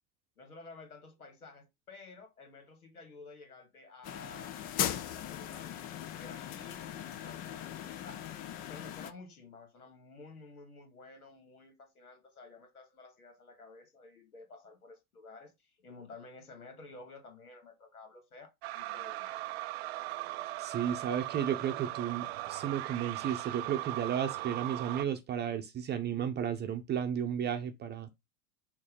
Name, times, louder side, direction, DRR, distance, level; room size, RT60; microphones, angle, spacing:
voice 1, 0.4-4.6 4.9-19.3, left 3 dB, 75° left, 2.0 m, -52 dB
sound 1, 4.0-9.1, left 10 dB, 20° left, 0.4 m, -39 dB
sound 2, 18.6-25.0, right 17 dB, 45° right, 0.5 m, -38 dB
voice 2, 20.6-28.1, right 9 dB, 25° right, 0.8 m, -33 dB
6.3 x 2.9 x 5.3 m
figure-of-eight pair, 85°, 44 cm